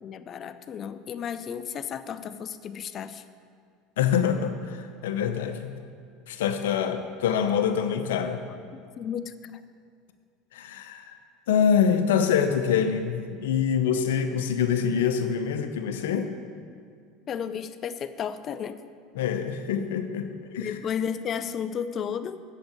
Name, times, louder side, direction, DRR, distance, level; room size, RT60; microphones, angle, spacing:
voice 1, 0.0-3.2 6.8-6.9 8.7-9.6 17.3-18.8 20.6-22.4, left 8 dB, 40° left, 12 dB, 0.6 m, -33 dB
voice 2, 4.0-5.7 6.3-7.0 7.2-8.4 10.5-11.1 11.5-16.3 19.1-20.7, left 7 dB, 80° left, 7 dB, 0.9 m, -25 dB
7.8 x 7.8 x 8.5 m, 2.2 s
hypercardioid pair, 85°, 0 cm